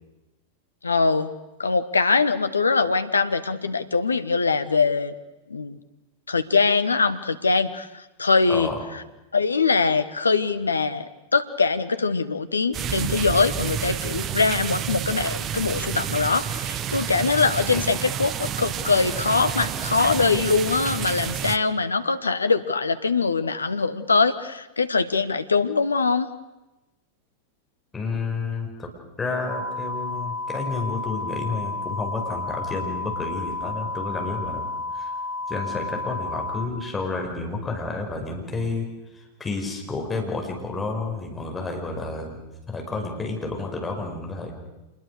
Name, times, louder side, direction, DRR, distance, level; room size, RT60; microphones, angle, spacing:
voice 1, 0.8-1.3 1.6-5.1 5.5-5.8 6.3-7.9 8.2-8.7 9.3-26.3, left 4 dB, 75° left, 12 dB, 1.2 m, -22 dB
voice 2, 8.5-8.8 17.7-17.8 27.9-28.9 29.2-34.7 34.9-35.1 35.5-38.9 39.1-42.4 42.7-44.5, left 3 dB, 15° left, 1 dB, 5.2 m, -30 dB
sound 1, 12.7-21.6, right 9 dB, 30° right, 1.1 m, -29 dB
sound 2, 29.5-36.7, left 3 dB, 30° left, 4.8 m, -31 dB
26.5 x 21.0 x 6.7 m, 1.0 s
figure-of-eight pair, 90°, 0 cm